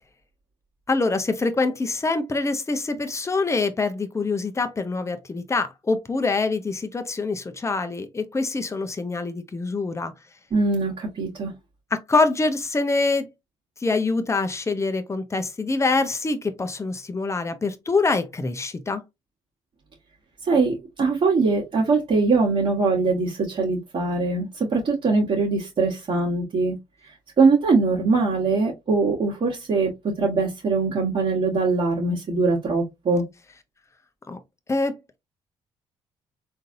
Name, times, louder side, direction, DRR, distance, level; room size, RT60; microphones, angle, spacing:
voice 1, 0.9-10.1 11.9-13.3 13.8-19.0 34.3-34.4 34.7-35.2, left 3 dB, 20° left, 0.7 m, -25 dB
voice 2, 10.5-11.5 20.4-26.8 27.0-33.3, right 3 dB, 45° right, 1.4 m, -22 dB
3.8 x 2.7 x 2.6 m
hypercardioid pair, 50°, 13 cm